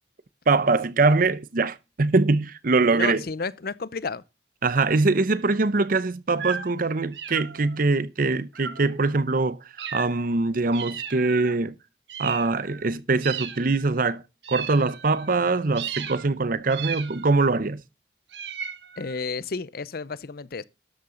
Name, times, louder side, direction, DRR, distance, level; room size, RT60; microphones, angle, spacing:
voice 1, 0.5-3.2 4.6-9.6 9.9-11.7 12.2-14.2 14.5-17.8, right 3 dB, 50° right, 0.7 m, -23 dB
voice 2, 2.9-4.2 19.0-20.6, left 4 dB, 60° left, 0.7 m, -32 dB
sound 1, 6.4-6.8 7.1-7.8 8.5-9.0 9.8-10.4 10.7-11.6 12.1-12.9 13.2-13.9 14.4-15.3 15.8-16.3 16.7-17.5 18.3-19.2, right 7 dB, 75° right, 1.4 m, -36 dB
12.5 x 8.7 x 3.9 m
head